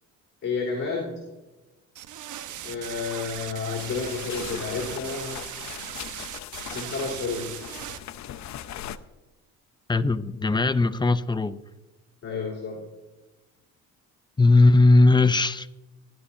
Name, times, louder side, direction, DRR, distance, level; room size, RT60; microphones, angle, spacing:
voice 1, 0.4-1.2 2.6-5.4 6.7-7.6 12.2-12.8, left 4 dB, 45° left, -4 dB, 3.6 m, -31 dB
sound 1, 2.0-8.0, right 11 dB, 70° right, 1.1 m, -38 dB
sound 2, 3.8-9.0, left 11 dB, 60° left, 0.7 m, -39 dB
voice 2, 9.9-11.6 14.4-15.7, left 2 dB, 15° left, 12 dB, 0.6 m, -19 dB
18.5 x 11.5 x 2.8 m, 1.1 s
cardioid pair, 90°, 31 cm